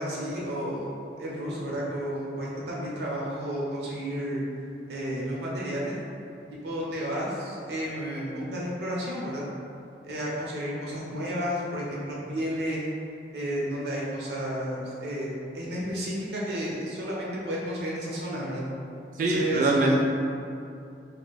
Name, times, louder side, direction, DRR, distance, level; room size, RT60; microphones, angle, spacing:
voice 1, 0.0-4.4 4.9-6.0 6.6-9.4 10.0-12.8 13.3-18.6 19.2-19.9, equal, 75° right, -5 dB, 0.7 m, -32 dB
voice 2, 19.2-20.0, right 2 dB, 45° right, -1 dB, 0.4 m, -23 dB
2.5 x 2.1 x 3.9 m, 2.5 s
head